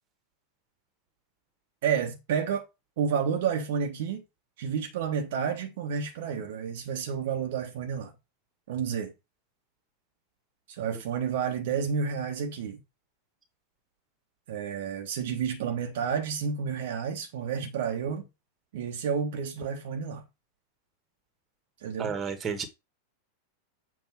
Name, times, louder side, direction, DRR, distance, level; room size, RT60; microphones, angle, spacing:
voice 1, 1.8-2.7 3.0-4.2 4.6-8.1 8.7-9.1 10.7-12.8 14.5-18.2 18.7-20.2 21.8-22.1, right 7 dB, 55° right, 1.1 m, -30 dB
voice 2, 22.0-22.7, right 6 dB, 20° right, 1.5 m, -31 dB
7.2 x 2.7 x 5.7 m
figure-of-eight pair, 90°, 0 cm